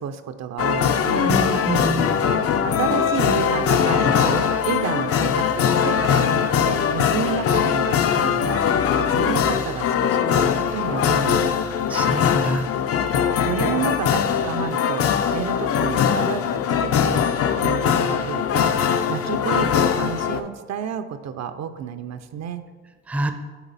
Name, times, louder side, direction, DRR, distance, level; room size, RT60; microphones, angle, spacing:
voice 1, 0.0-1.4 2.6-5.5 5.8-11.5 13.1-16.5 16.8-17.2 17.6-22.6, right 7 dB, 60° right, 9 dB, 0.5 m, -30 dB
sound 1, 0.6-20.4, left 7 dB, 50° left, 0.4 m, -21 dB
voice 2, 1.3-2.2 11.9-12.7 23.1-23.3, right 1 dB, 5° right, 7 dB, 0.4 m, -25 dB
7.1 x 3.7 x 4.0 m, 1.3 s
cardioid pair, 90°, 30 cm